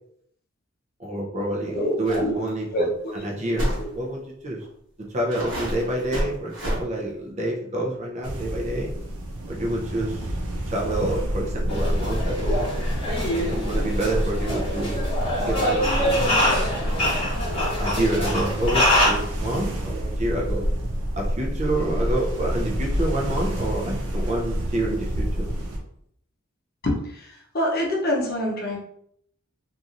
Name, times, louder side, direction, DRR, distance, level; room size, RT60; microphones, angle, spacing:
voice 1, 1.0-4.6 5.1-8.9 9.5-10.3 10.7-12.7 13.3-15.1 15.4-16.2 16.6-17.2 17.5-20.6 21.2-25.5, right 1 dB, 30° right, -1 dB, 0.5 m, -28 dB
voice 2, 1.7-2.3 2.7-3.2 3.8-3.9 26.8-28.8, equal, 45° left, -2 dB, 0.7 m, -26 dB
sound 1, 2.1-2.2 2.5-2.6 3.6-3.8 4.6-4.7 5.3-6.8, equal, 60° right, 1.1 m, -28 dB
sound 2, 8.2-25.8, equal, 90° right, 0.6 m, -28 dB
sound 3, 11.7-19.1, left 1 dB, 25° left, 1.0 m, -25 dB
2.9 x 2.6 x 2.4 m, 0.71 s
head